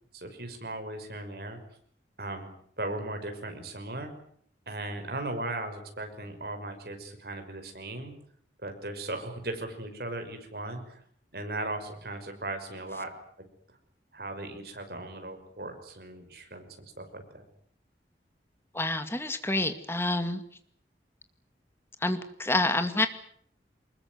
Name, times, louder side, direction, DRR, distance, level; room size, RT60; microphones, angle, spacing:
voice 1, 0.1-1.6 2.2-2.5 2.8-4.1 4.7-8.1 8.6-11.0 11.3-13.1 14.1-16.7 17.0-17.4, right 2 dB, 60° right, 6 dB, 5.9 m, -37 dB
voice 2, 18.7-20.4 22.0-23.1, left 2 dB, 15° left, 9 dB, 2.2 m, -28 dB
24.0 x 21.5 x 9.6 m, 0.63 s
head